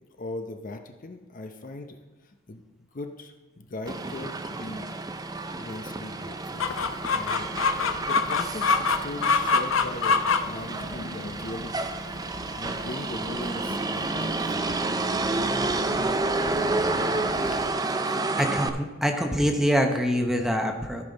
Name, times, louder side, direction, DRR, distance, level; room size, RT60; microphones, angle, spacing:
voice 1, 0.1-2.6 2.9-4.9 5.5-6.7 7.1-11.8 12.1-12.2 12.6-15.4 15.7-16.1 16.6-17.2, left 2 dB, 40° left, 5 dB, 0.7 m, -39 dB
Motor vehicle (road), 3.9-18.7, right 2 dB, 20° right, 0.5 m, -30 dB
Chicken rooster, 6.6-17.7, left 4 dB, 85° left, 0.6 m, -28 dB
voice 2, 18.4-21.0, equal, ahead, 3 dB, 0.8 m, -25 dB
14.0 x 5.5 x 4.0 m, 1.2 s
head